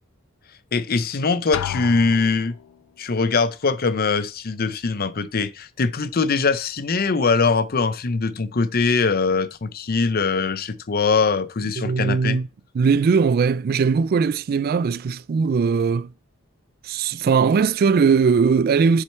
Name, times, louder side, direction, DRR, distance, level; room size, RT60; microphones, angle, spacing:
voice 1, 0.7-2.6 3.0-12.4, left 4 dB, 45° left, 0.6 m, -22 dB
Drum, 1.5-2.7, left 10 dB, 85° left, 0.3 m, -31 dB
voice 2, 11.8-12.5 12.7-16.1 16.8-19.0, right 5 dB, 45° right, 0.3 m, -19 dB
7.4 x 6.5 x 4.4 m
head